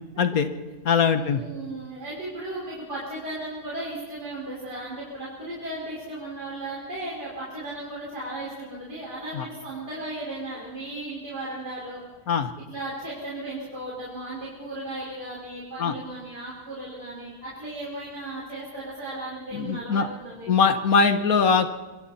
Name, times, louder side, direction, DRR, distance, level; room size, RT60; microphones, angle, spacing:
voice 1, 0.2-0.5 0.9-1.4 9.3-9.5 12.3-12.5 15.8-15.9 19.5-20.1 20.5-21.8, left 5 dB, 65° left, 9 dB, 1.7 m, -21 dB
voice 2, 1.1-12.0 12.6-20.7, right 1 dB, 85° right, -6 dB, 5.8 m, -36 dB
26.0 x 25.5 x 4.3 m, 1.3 s
omnidirectional pair, 1.7 m